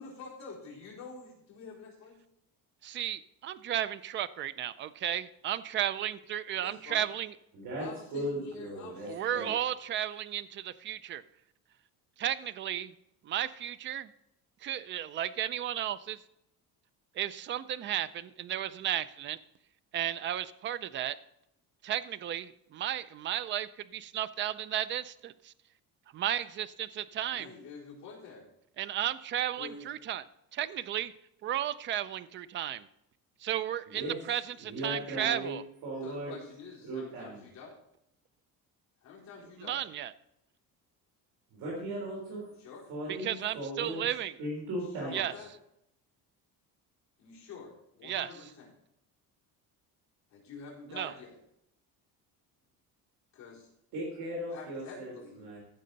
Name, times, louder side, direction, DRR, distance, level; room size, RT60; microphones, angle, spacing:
voice 1, 0.0-2.2 6.5-7.1 7.8-9.5 27.2-28.5 29.6-29.9 36.0-37.8 39.0-39.8 42.5-42.9 44.7-45.5 47.2-48.7 50.3-51.4 53.3-53.7 54.5-55.4, left 4 dB, 50° left, -6 dB, 4.0 m, -48 dB
voice 2, 2.8-7.3 9.1-11.2 12.2-12.9 13.2-14.1 14.6-16.2 17.2-19.4 19.9-21.2 21.8-25.5 26.1-27.5 28.8-30.2 30.5-31.1 31.4-32.9 33.4-35.6 39.6-40.1 43.1-44.3 45.1-45.3 48.0-48.3 50.9-51.1, right 11 dB, 35° right, 15 dB, 0.4 m, -34 dB
voice 3, 7.5-9.1 9.3-9.5 33.9-34.2 34.6-35.5 35.8-36.3 36.8-37.4 41.5-42.4 42.9-44.1 44.4-45.2 53.9-55.6, right 1 dB, 70° right, -3 dB, 3.7 m, -37 dB
14.5 x 6.6 x 4.0 m, 0.79 s
cardioid pair, 165°, 37 cm